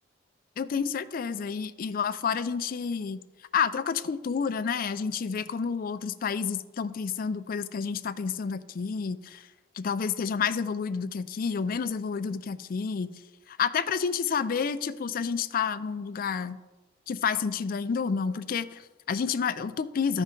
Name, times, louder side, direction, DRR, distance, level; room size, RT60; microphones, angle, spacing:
voice 1, 0.6-3.2 3.5-9.5 9.8-13.1 13.5-16.6 17.1-20.2, left 6 dB, 50° left, 12 dB, 0.4 m, -29 dB
13.0 x 5.3 x 3.8 m, 1.1 s
head